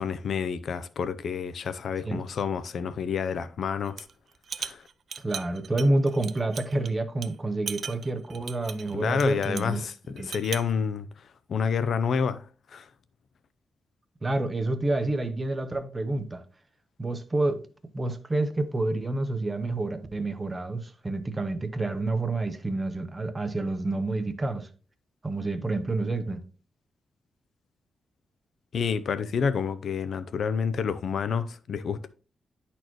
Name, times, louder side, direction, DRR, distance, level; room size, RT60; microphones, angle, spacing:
voice 1, 0.0-4.0 4.6-4.8 8.9-11.1 11.5-12.5 12.7-12.9 28.7-32.1, left 6 dB, 60° left, 0.5 m, -29 dB
sound 1, 3.9-4.1 4.4-6.9 7.2-7.3 7.7-9.7 10.2-10.7, right 6 dB, 50° right, 0.3 m, -38 dB
voice 2, 5.2-9.8 10.2-10.3 14.2-16.4 17.0-17.6 17.9-24.7 25.2-26.4, right 2 dB, 20° right, 0.7 m, -28 dB
10.5 x 4.2 x 3.0 m
wide cardioid pair, 160°, 0 cm